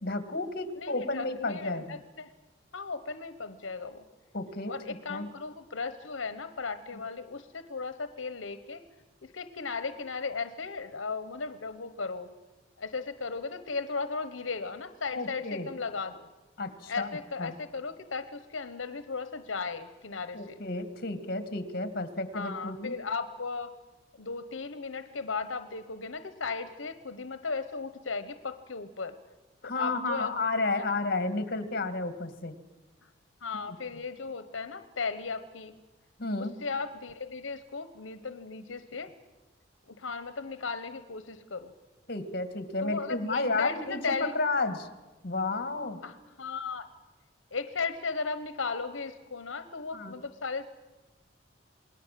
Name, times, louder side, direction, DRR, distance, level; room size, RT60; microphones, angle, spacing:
voice 1, 0.0-2.0 4.3-4.7 5.1-5.3 15.1-15.7 16.6-17.1 17.4-17.5 20.3-23.0 29.6-32.6 33.7-33.8 36.2-36.6 42.1-44.9 45.2-46.0 49.9-50.2, left 3 dB, 50° left, 10 dB, 2.1 m, -32 dB
voice 2, 0.7-2.3 2.7-4.0 4.7-8.8 9.2-12.3 12.8-16.3 16.9-20.6 22.3-23.8 24.2-29.2 29.6-30.4 30.7-31.0 33.4-35.7 36.4-39.1 39.9-41.7 42.8-44.3 46.0-46.9 47.5-50.7, left 4 dB, 80° left, 11 dB, 1.1 m, -36 dB
28.0 x 20.0 x 7.6 m, 1.2 s
head